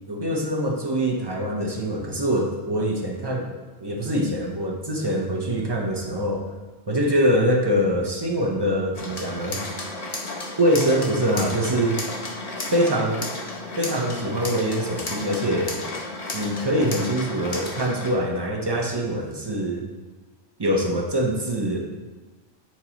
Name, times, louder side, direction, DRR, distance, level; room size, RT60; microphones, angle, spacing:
voice 1, 0.1-6.5 6.9-9.6 10.6-12.0 12.7-13.3 13.8-15.8 16.3-19.9 20.6-21.8, equal, 30° right, 1 dB, 0.5 m, -24 dB
sound 1, 8.9-18.1, left 2 dB, 35° left, 0.8 m, -33 dB
9.6 x 4.5 x 2.9 m, 1.3 s
omnidirectional pair, 1.4 m